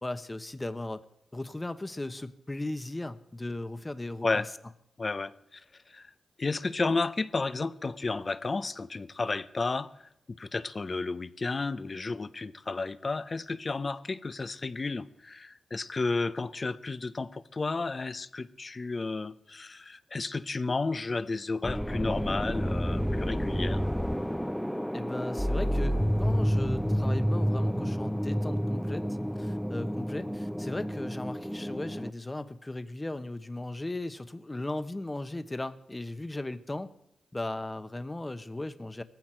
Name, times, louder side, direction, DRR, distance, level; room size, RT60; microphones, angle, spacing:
voice 1, 0.0-1.0 1.3-4.4 24.9-29.1 29.4-36.9 37.3-39.0, left 2 dB, 20° left, 1.1 m, -37 dB
voice 2, 5.0-6.1 6.4-9.9 10.4-23.9, left 3 dB, 40° left, 0.8 m, -32 dB
sound 1, 21.6-32.1, equal, ahead, 0.5 m, -29 dB
18.5 x 15.0 x 4.6 m
cardioid pair, 60°, 0 cm